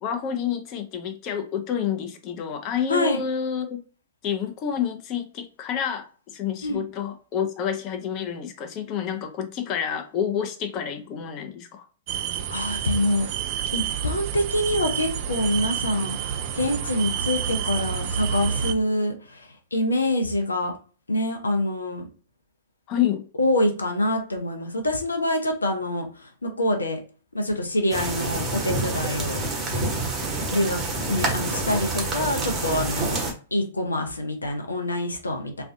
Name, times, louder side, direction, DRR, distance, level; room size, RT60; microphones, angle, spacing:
voice 1, 0.0-3.8 4.2-11.9 22.9-23.3, left 8 dB, 35° left, 0.5 m, -29 dB
sound 1, 12.1-18.7, right 8 dB, 45° right, 0.4 m, -29 dB
voice 2, 12.5-13.3 13.7-16.2 16.5-20.7 21.1-22.0 23.4-27.0 27.3-29.4 30.5-30.8 31.1-33.2 33.5-35.6, left 1 dB, 85° left, 0.6 m, -25 dB
sound 2, 27.9-33.3, right 2 dB, 20° right, 0.9 m, -27 dB
2.4 x 2.1 x 2.6 m
figure-of-eight pair, 105°, 0 cm